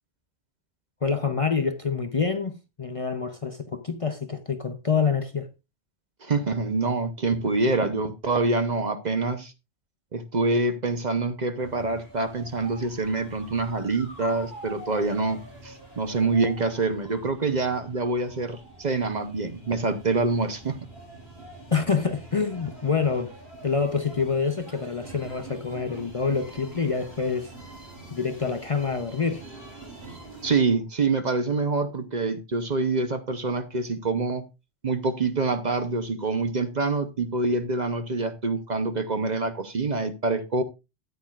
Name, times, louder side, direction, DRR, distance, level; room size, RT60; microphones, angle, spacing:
voice 1, 1.0-5.5 21.7-23.3 23.6-27.5 28.1-29.4, left 5 dB, 35° left, 0.7 m, -26 dB
voice 2, 6.2-9.5 10.1-20.8 30.4-34.4 34.8-40.6, right 3 dB, 45° right, 0.9 m, -26 dB
sound 1, 11.6-30.6, right 2 dB, 65° right, 6.4 m, -45 dB
13.5 x 9.2 x 2.4 m
omnidirectional pair, 1.1 m